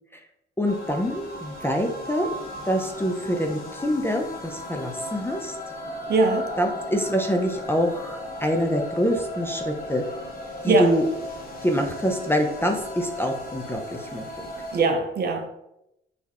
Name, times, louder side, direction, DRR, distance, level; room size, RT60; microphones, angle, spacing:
sound 1, 0.6-14.8, left 1 dB, 45° left, 1.1 m, -36 dB
voice 1, 0.6-2.3 2.6-5.6 6.6-10.0 10.6-11.0 11.6-14.3, equal, 10° left, 3 dB, 0.6 m, -25 dB
voice 2, 6.1-6.5 10.7-10.9 14.7-15.5, right 3 dB, 50° right, 6 dB, 0.7 m, -21 dB
4.4 x 3.4 x 3.0 m, 0.83 s
cardioid pair, 95°, 21 cm